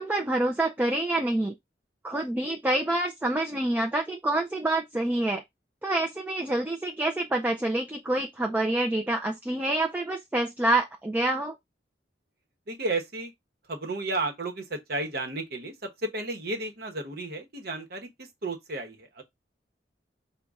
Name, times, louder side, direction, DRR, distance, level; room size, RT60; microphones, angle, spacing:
voice 1, 0.0-1.6 2.0-5.4 5.8-11.6, right 1 dB, 10° right, 0.4 m, -27 dB
voice 2, 12.7-13.3 13.7-19.2, right 2 dB, 60° right, 1.0 m, -33 dB
5.2 x 2.2 x 3.5 m
head